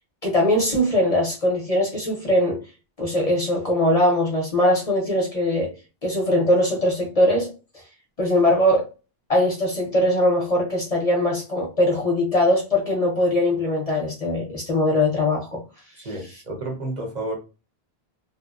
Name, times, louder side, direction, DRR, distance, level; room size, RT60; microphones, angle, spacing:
voice 1, 0.2-2.6 3.0-5.7 6.0-7.5 8.2-8.9 9.3-15.6, left 1 dB, 45° left, 0.6 m, -21 dB
voice 2, 16.0-17.4, right 2 dB, 50° right, 0.7 m, -31 dB
2.6 x 2.1 x 2.3 m
omnidirectional pair, 1.1 m